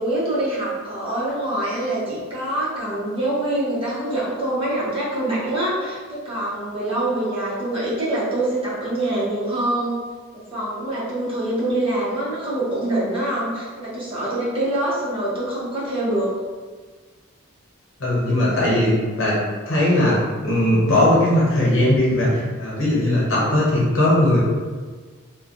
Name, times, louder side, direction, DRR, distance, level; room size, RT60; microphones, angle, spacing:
voice 1, 0.0-10.0 10.5-16.3, right 1 dB, 25° right, -9 dB, 0.8 m, -25 dB
voice 2, 18.0-18.9 19.2-19.4 19.7-24.4, left 1 dB, 65° left, -6 dB, 0.9 m, -19 dB
3.2 x 2.1 x 2.5 m, 1.5 s
head